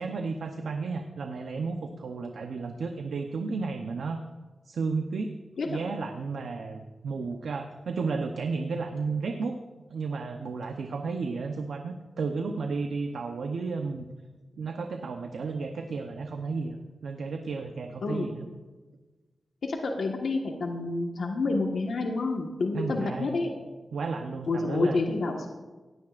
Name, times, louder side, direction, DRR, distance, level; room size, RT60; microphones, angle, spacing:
voice 1, 0.0-4.2 4.7-5.3 5.6-9.6 9.9-14.1 14.6-16.8 17.0-18.5 22.7-23.4 23.9-25.0, right 4 dB, 90° right, 5 dB, 0.8 m, -33 dB
voice 2, 19.6-23.5 24.5-25.5, left 3 dB, 80° left, 1 dB, 1.4 m, -28 dB
17.5 x 17.0 x 2.5 m, 1.3 s
wide cardioid pair, 105°, 0 cm